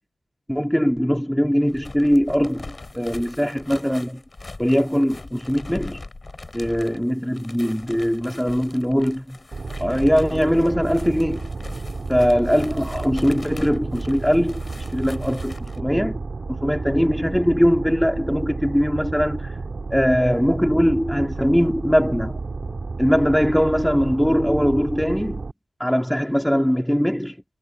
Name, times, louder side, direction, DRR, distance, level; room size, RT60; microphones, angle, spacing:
voice 1, 0.5-4.2 4.6-6.0 6.5-9.4 9.8-11.5 12.1-14.6 14.9-16.2 16.5-19.5 19.9-22.4 23.0-25.4 25.8-27.3, equal, ahead, 2.4 m, -21 dB
sound 1, 1.6-15.8, left 2 dB, 30° left, 4.8 m, -41 dB
sound 2, 9.5-25.5, right 3 dB, 45° right, 2.0 m, -31 dB
wide cardioid pair, 115°, 0 cm